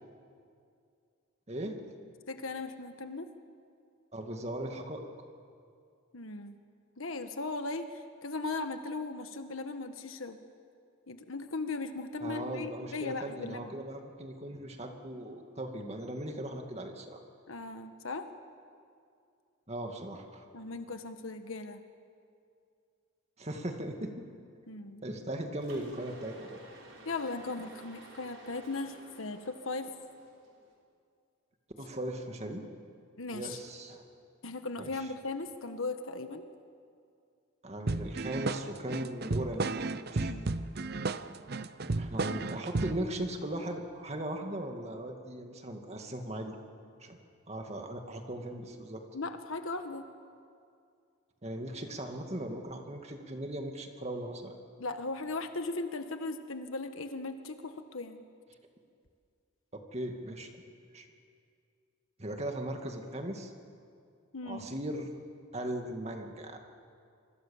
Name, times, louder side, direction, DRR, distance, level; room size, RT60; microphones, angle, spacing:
voice 1, 1.5-1.8 4.1-5.0 12.2-17.2 19.7-20.5 23.4-24.2 25.0-26.6 31.8-32.7 33.3-34.0 34.8-34.9 37.6-39.8 40.1-40.4 41.8-46.5 47.0-47.2 47.5-49.0 51.4-54.6 59.7-60.6 60.9-61.1 62.2-63.5 64.5-65.1 65.5-66.6, right 1 dB, 30° right, 4 dB, 2.2 m, -38 dB
voice 2, 2.3-3.3 6.1-6.6 7.0-10.4 11.1-13.7 17.5-18.3 20.5-21.8 24.7-25.0 27.0-29.9 33.2-33.6 34.4-36.5 40.2-40.5 49.1-50.1 54.8-58.2 64.3-64.7, left 3 dB, 75° left, 7 dB, 1.4 m, -38 dB
Mechanisms, 25.6-30.7, right 1 dB, 70° right, 5.3 m, -51 dB
sound 1, 37.9-43.1, right 3 dB, 50° right, 0.7 m, -33 dB
27.0 x 24.0 x 7.2 m, 2.4 s
head